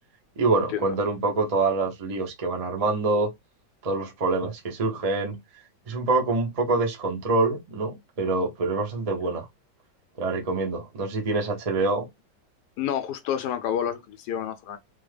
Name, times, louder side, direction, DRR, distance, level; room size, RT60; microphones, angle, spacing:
voice 1, 0.4-3.3 3.8-5.4 5.9-9.5 10.2-12.0, right 3 dB, 40° right, 0.5 m, -25 dB
voice 2, 12.8-14.8, left 9 dB, 75° left, 1.1 m, -29 dB
3.4 x 2.0 x 3.2 m
omnidirectional pair, 1.9 m